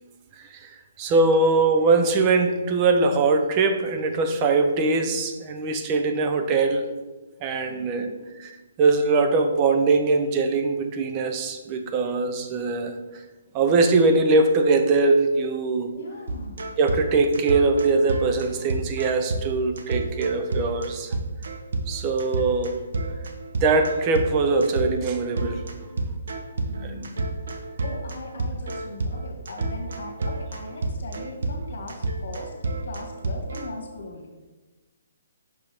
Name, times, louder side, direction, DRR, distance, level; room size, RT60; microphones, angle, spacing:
voice 1, 0.4-0.7 1.0-6.9 7.4-8.1 8.4-8.5 8.8-13.2 13.5-16.0 16.8-21.2 21.9-22.8 23.6-25.6 26.8-27.3, right 3 dB, 20° right, 6 dB, 0.5 m, -22 dB
voice 2, 7.7-8.2 15.9-16.6 26.6-27.2 27.8-34.3, left 3 dB, 65° left, 1 dB, 1.4 m, -40 dB
sound 1, 16.3-33.7, right 2 dB, 65° right, 0.8 m, -30 dB
5.9 x 5.3 x 3.4 m, 1.2 s
hypercardioid pair, 165°, 0 cm